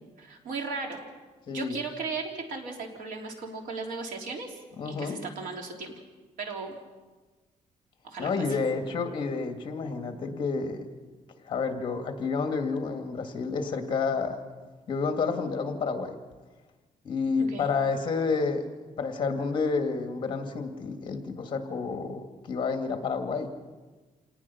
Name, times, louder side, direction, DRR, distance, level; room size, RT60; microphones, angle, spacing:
voice 1, 0.2-1.1 1.5-4.6 4.8-5.9 6.4-6.8 8.0-8.3 17.4-17.7, right 4 dB, 90° right, 2 dB, 3.3 m, -36 dB
voice 2, 1.5-1.8 4.8-5.2 8.2-10.9 11.4-14.4 14.9-16.2 17.0-18.7 19.0-23.5, left 4 dB, 35° left, 5 dB, 2.1 m, -29 dB
27.0 x 19.0 x 5.8 m, 1.3 s
cardioid pair, 170°, 14 cm